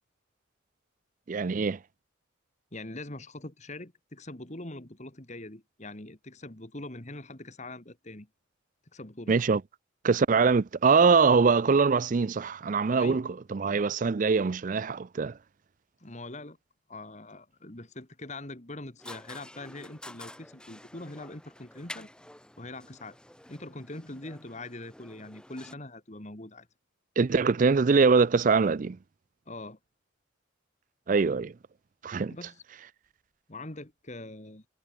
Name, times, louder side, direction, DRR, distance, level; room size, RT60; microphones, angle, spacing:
voice 1, 1.3-1.8 9.3-9.6 10.0-15.4 27.2-29.0 31.1-31.5 32.0-32.3, right 4 dB, 40° right, 0.4 m, -23 dB
voice 2, 2.7-8.3 8.9-9.4 12.9-13.2 16.0-16.6 16.9-22.1 22.6-23.2 23.5-26.7 29.5-29.8 32.3-32.6 33.5-34.6, left 2 dB, 35° left, 2.0 m, -43 dB
sound 1, 19.0-25.7, left 1 dB, 5° left, 1.0 m, -49 dB
head